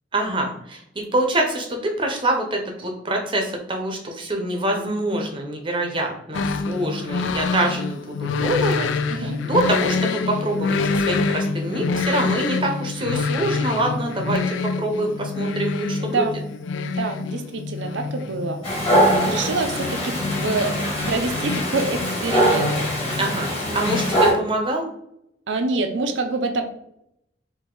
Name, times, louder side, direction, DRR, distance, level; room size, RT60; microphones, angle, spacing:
voice 1, 0.1-16.3 23.2-24.8, right 1 dB, 25° right, 2 dB, 0.7 m, -25 dB
sound 1, 6.3-24.1, left 4 dB, 85° left, 0.4 m, -27 dB
voice 2, 9.1-9.4 16.0-16.3 16.9-22.8 25.5-26.6, right 3 dB, 80° right, 6 dB, 0.6 m, -27 dB
Dog, 18.6-24.3, right 1 dB, 30° left, 1.7 m, -22 dB
4.7 x 2.6 x 3.8 m, 0.75 s
head